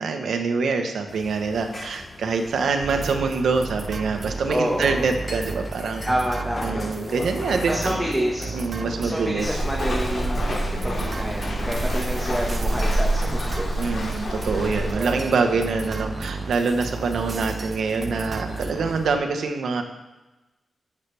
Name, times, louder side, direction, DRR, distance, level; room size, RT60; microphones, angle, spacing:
voice 1, 0.0-6.0 6.6-8.0 8.5-9.6 13.7-19.8, right 4 dB, 80° right, 6 dB, 1.0 m, -25 dB
sound 1, 1.1-19.1, left 2 dB, 35° left, 0.9 m, -39 dB
sound 2, 2.8-19.2, right 4 dB, 40° right, 0.4 m, -34 dB
voice 2, 4.5-5.0 6.0-6.8 7.7-8.5 9.0-13.8 14.5-15.2, equal, ahead, -3 dB, 1.4 m, -28 dB
Walk footsteps, 9.4-14.9, right 1 dB, 60° left, 2.9 m, -27 dB
11.0 x 7.3 x 3.4 m, 1.1 s
cardioid pair, 90°, 0 cm